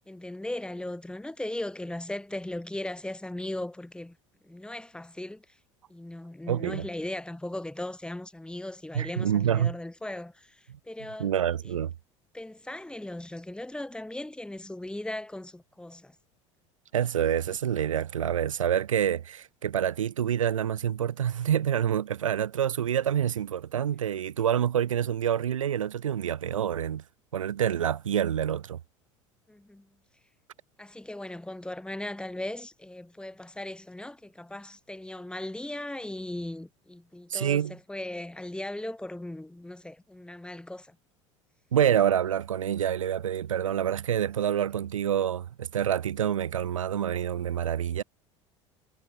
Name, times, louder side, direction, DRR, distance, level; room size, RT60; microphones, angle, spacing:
voice 1, 0.1-4.2 4.4-5.6 5.9-11.3 11.6-11.8 12.3-16.2 29.5-29.9 30.8-41.0, left 1 dB, 5° left, 1.9 m, -38 dB
voice 2, 6.5-6.9 8.9-9.7 10.7-10.8 11.2-11.9 16.9-27.0 27.3-28.8 37.3-37.8 41.7-48.0, right 9 dB, 90° right, 0.5 m, -27 dB
hypercardioid pair, 75°, 16 cm